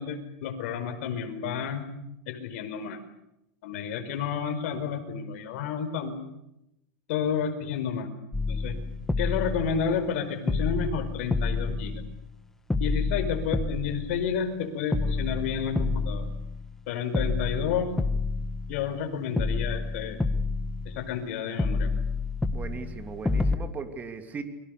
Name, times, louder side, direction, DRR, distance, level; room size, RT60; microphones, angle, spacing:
voice 1, 0.0-1.8 2.3-3.0 3.6-6.1 7.1-8.1 8.5-8.8 9.2-12.0 12.8-16.2 16.9-17.9 18.7-20.2 20.9-21.9, left 7 dB, 65° left, 6 dB, 5.1 m, -30 dB
sound 1, 8.3-10.2 10.5-12.4 12.7-14.6 14.9-16.8 17.1-19.0 19.4-21.3 21.6-23.6, left 3 dB, 5° left, 1.4 m, -29 dB
voice 2, 22.5-24.4, right 5 dB, 20° right, 7 dB, 3.0 m, -38 dB
30.0 x 23.5 x 6.8 m, 0.85 s
supercardioid pair, 140°, 8 cm